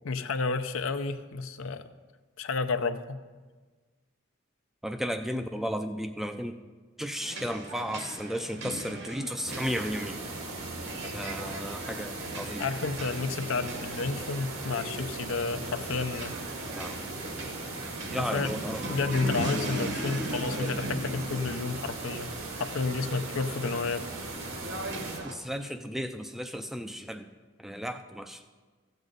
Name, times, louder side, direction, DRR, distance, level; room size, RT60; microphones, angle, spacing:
voice 1, 0.0-1.8 2.4-3.2 12.6-16.4 18.2-18.5 18.9-24.1, left 4 dB, 80° left, 10 dB, 0.6 m, -31 dB
voice 2, 4.8-6.6 7.0-10.2 11.0-12.7 16.7-17.0 18.1-19.0 25.2-27.3 27.6-28.5, equal, ahead, 7 dB, 0.3 m, -34 dB
sound 1, 7.1-25.3, right 1 dB, 55° right, 1.1 m, -39 dB
sound 2, 9.5-25.2, right 2 dB, 85° right, 1.9 m, -38 dB
14.5 x 8.0 x 3.9 m, 1.4 s
head